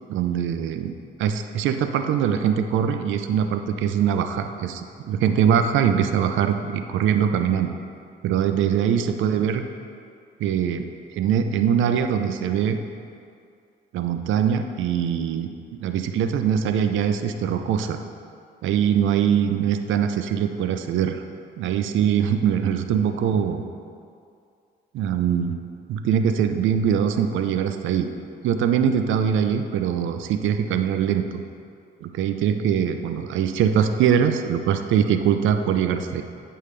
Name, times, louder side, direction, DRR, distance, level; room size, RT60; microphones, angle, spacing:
voice 1, 0.1-0.9 1.2-7.7 8.2-9.6 10.4-10.9 11.1-12.8 13.9-15.5 15.8-18.0 18.6-21.2 21.6-23.6 24.9-25.6 25.9-28.1 28.4-31.4 32.0-36.2, right 8 dB, 80° right, 8 dB, 0.5 m, -22 dB
8.4 x 5.5 x 3.3 m, 2.3 s
cardioid pair, 90°, 20 cm